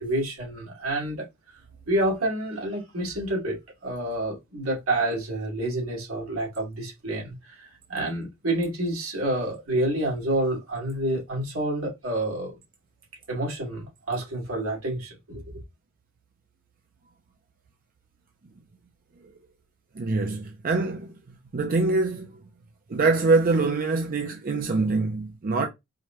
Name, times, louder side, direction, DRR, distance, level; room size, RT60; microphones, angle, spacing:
voice 1, 0.0-1.6 1.9-12.6 13.3-15.4, right 1 dB, 85° right, 2.3 m, -28 dB
voice 2, 20.0-21.1 21.5-22.3 22.9-25.7, right 3 dB, 45° right, 0.5 m, -24 dB
4.8 x 2.2 x 2.8 m
head